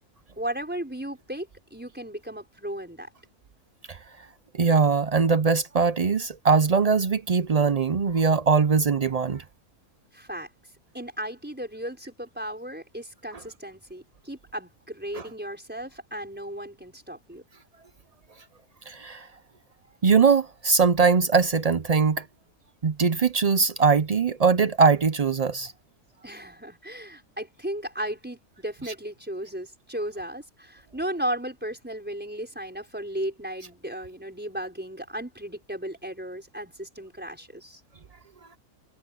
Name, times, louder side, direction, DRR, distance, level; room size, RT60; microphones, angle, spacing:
voice 1, 0.4-3.1 10.1-10.5 10.9-17.4 26.2-37.8, right 1 dB, 5° right, 5.6 m, -35 dB
voice 2, 4.5-9.4 15.1-15.2 18.9-19.3 20.0-22.2 22.8-25.7, right 5 dB, 60° right, 0.4 m, -21 dB
omnidirectional pair, 1.5 m